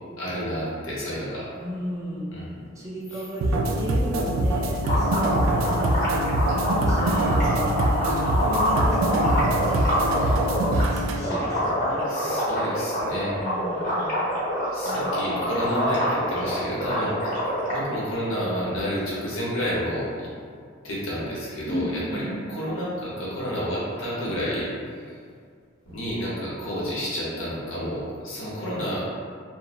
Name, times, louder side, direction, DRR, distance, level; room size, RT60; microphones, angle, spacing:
voice 1, 0.2-1.5 2.3-2.5 3.1-3.2 7.0-7.4 12.0-13.4 13.8-14.2 14.7-20.1 20.8-22.2 22.5-25.2 25.9-29.0, equal, 80° left, -7 dB, 0.8 m, -30 dB
voice 2, 1.5-6.1 6.5-10.4 10.7-12.1 13.3-13.9 14.8-15.5 21.7-22.3, equal, 15° right, -6 dB, 0.5 m, -34 dB
sound 1, 3.4-11.2, right 1 dB, 75° right, 0.3 m, -24 dB
sound 2, 4.8-10.8 11.2-17.8, equal, 40° left, 1.0 m, -26 dB
2.9 x 2.1 x 2.4 m, 2.1 s
head